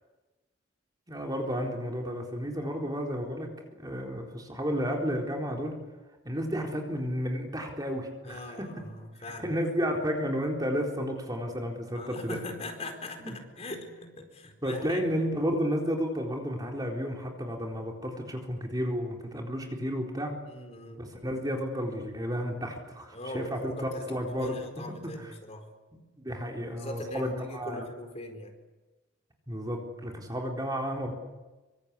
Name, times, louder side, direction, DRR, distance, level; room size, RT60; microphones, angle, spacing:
voice 1, 1.1-3.5 3.8-5.8 6.2-8.7 9.4-12.4 13.2-13.4 14.6-20.3 21.0-24.6 25.0-25.3 25.9-27.9 29.5-31.1, equal, 20° right, 1 dB, 4.0 m, -32 dB
voice 2, 8.2-9.5 11.9-15.0 20.5-21.0 23.1-25.7 26.7-28.5, left 1 dB, 35° left, 4 dB, 4.4 m, -41 dB
26.0 x 24.5 x 8.5 m, 1.2 s
head